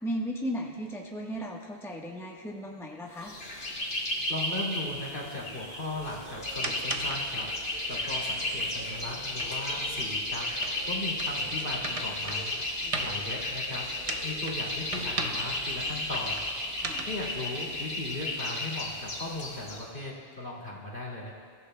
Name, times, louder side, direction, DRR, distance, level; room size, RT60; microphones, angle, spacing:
voice 1, 0.0-3.3 12.8-12.9 16.8-17.1, equal, 5° left, -1 dB, 1.1 m, -36 dB
sound 1, 3.2-19.8, left 1 dB, 75° left, 2.6 m, -34 dB
voice 2, 4.3-7.5 7.9-10.5 10.9-12.5 13.0-13.9 14.2-16.5 17.0-21.3, left 2 dB, 55° left, -3 dB, 2.7 m, -37 dB
sound 2, 5.9-17.4, right 2 dB, 35° right, 0.9 m, -40 dB
29.0 x 15.0 x 2.2 m, 2.1 s
omnidirectional pair, 1.0 m